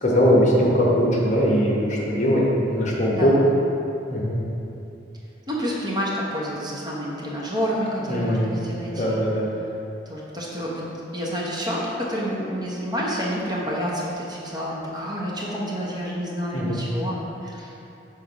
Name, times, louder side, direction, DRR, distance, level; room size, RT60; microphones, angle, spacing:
voice 1, 0.0-2.4 2.7-3.3 4.1-4.4 8.1-8.5 8.9-9.5 16.5-16.8, equal, 40° left, -4 dB, 1.1 m, -20 dB
voice 2, 5.5-9.2 10.1-10.9 11.1-17.7, equal, 20° right, -5 dB, 0.9 m, -29 dB
6.3 x 4.3 x 5.1 m, 2.8 s
head